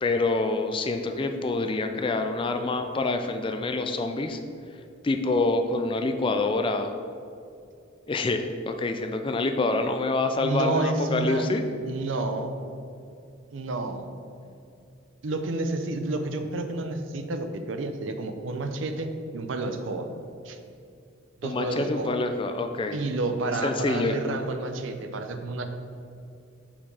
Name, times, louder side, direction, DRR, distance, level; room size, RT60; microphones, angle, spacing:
voice 1, 0.0-4.4 5.0-7.0 8.1-11.6 21.4-23.0 23.6-24.2, left 3 dB, 25° left, 6 dB, 0.3 m, -26 dB
voice 2, 10.4-11.5 11.8-12.6 13.5-14.1 15.2-20.1 20.4-20.6 21.4-22.1 22.9-25.6, right 2 dB, 65° right, 7 dB, 0.6 m, -30 dB
5.9 x 4.4 x 4.8 m, 2.5 s
head